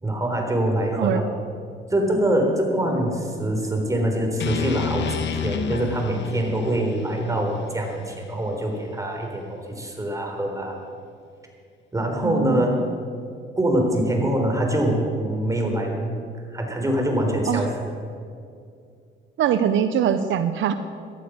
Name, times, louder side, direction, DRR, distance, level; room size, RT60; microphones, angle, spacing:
voice 1, 0.0-1.2 1.9-10.8 11.9-12.8 13.6-16.0 16.5-17.7, right 1 dB, 15° right, 1 dB, 3.9 m, -24 dB
sound 1, 4.4-8.5, left 7 dB, 65° left, 1.4 m, -31 dB
voice 2, 12.2-12.9 17.5-17.6 19.4-20.7, right 9 dB, 75° right, 11 dB, 0.7 m, -23 dB
17.5 x 11.5 x 6.3 m, 2.3 s
cardioid pair, 90°, 20 cm